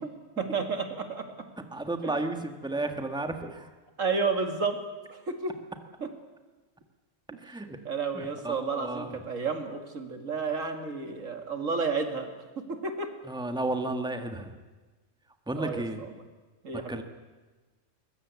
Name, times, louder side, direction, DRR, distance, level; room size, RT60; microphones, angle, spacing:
voice 1, 0.4-1.3 2.0-2.1 4.0-4.8 5.1-5.5 6.0-6.1 7.3-7.4 7.8-12.3 12.7-13.1 15.6-16.1 16.6-17.0, right 4 dB, 85° right, 6 dB, 2.6 m, -31 dB
voice 2, 1.7-3.7 7.4-7.8 8.1-9.2 13.2-14.6 15.5-16.0 16.7-17.0, right 2 dB, 5° right, 6 dB, 1.6 m, -33 dB
22.0 x 21.0 x 8.3 m, 1.3 s
omnidirectional pair, 1.3 m